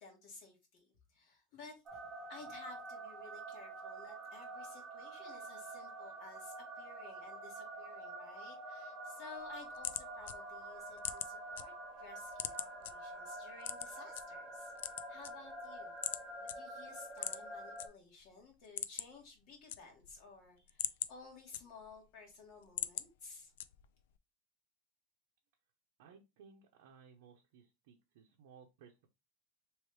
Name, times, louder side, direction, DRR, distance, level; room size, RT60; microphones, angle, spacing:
voice 1, 0.0-2.0 2.3-15.9 16.4-23.5, left 4 dB, 45° left, 1 dB, 1.4 m, -55 dB
sound 1, 1.9-17.9, right 2 dB, 20° right, 0.7 m, -47 dB
FX dino light pen, 9.4-11.6 12.0-12.9 13.6-14.2 14.7-15.7 16.0-16.2 16.5-16.6 17.1-17.9 18.2-18.3 18.6-19.2 19.5-20.2 20.6-22.0 22.4-23.1 23.6-24.0, left 12 dB, 80° left, 0.3 m, -41 dB
voice 2, 26.0-29.1, right 6 dB, 65° right, 1 dB, 0.7 m, -60 dB
3.2 x 3.1 x 3.2 m, 0.23 s
supercardioid pair, 165°, 0 cm